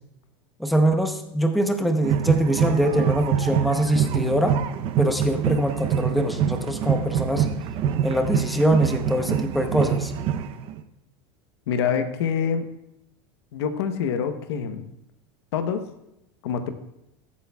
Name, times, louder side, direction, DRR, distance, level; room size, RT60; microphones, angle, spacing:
voice 1, 0.6-4.5 5.0-7.5 8.0-10.1, right 1 dB, ahead, 4 dB, 0.8 m, -23 dB
sound 1, 2.0-10.8, right 8 dB, 45° right, 0.7 m, -25 dB
voice 2, 11.7-12.7 13.5-14.9 15.5-15.8 16.4-16.7, left 7 dB, 80° left, 8 dB, 1.0 m, -26 dB
21.5 x 8.5 x 2.3 m, 0.85 s
supercardioid pair, 140°, 14 cm